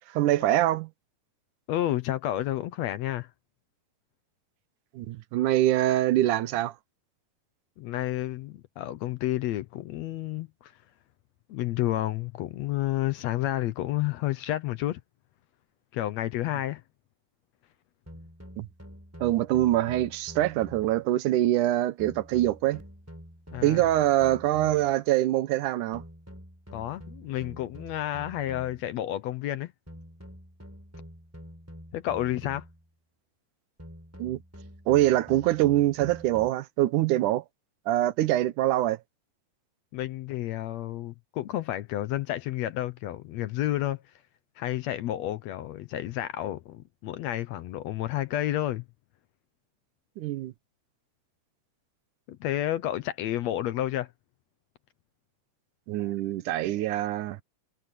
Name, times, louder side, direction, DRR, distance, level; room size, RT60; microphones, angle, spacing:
voice 1, 0.1-0.9 4.9-6.7 18.6-18.7 19.2-22.8 23.6-26.0 34.2-34.4 34.9-37.4 37.9-39.0 50.2-50.5 55.9-57.4, right 14 dB, 85° right, 2.4 m, -24 dB
voice 2, 1.7-3.3 7.8-10.7 11.5-15.0 15.9-16.8 23.5-23.8 26.7-29.7 31.9-32.7 39.9-44.0 44.6-48.9 52.3-54.1, left 13 dB, 75° left, 1.8 m, -30 dB
sound 1, 18.1-21.1 22.0-25.0 25.9-28.9 29.9-32.9 33.8-36.5, equal, 5° right, 4.8 m, -47 dB
omnidirectional pair, 3.5 m